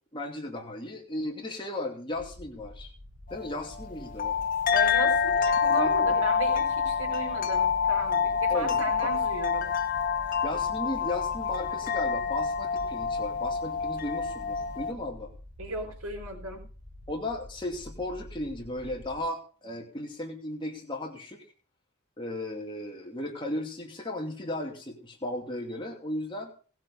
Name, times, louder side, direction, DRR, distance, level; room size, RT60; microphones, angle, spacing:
voice 1, 0.1-2.9 3.3-4.4 5.7-6.2 8.5-8.8 10.4-15.3 17.1-21.5 22.2-26.5, left 1 dB, 20° left, 1 dB, 2.6 m, -35 dB
sound 1, 2.1-19.2, left 1 dB, 25° right, 5.7 m, -47 dB
sound 2, 3.3-14.9, left 6 dB, 40° left, 1.7 m, -27 dB
voice 2, 4.7-9.7 15.6-16.6, right 2 dB, 85° right, 4 dB, 4.4 m, -36 dB
18.5 x 7.5 x 5.6 m, 0.39 s
head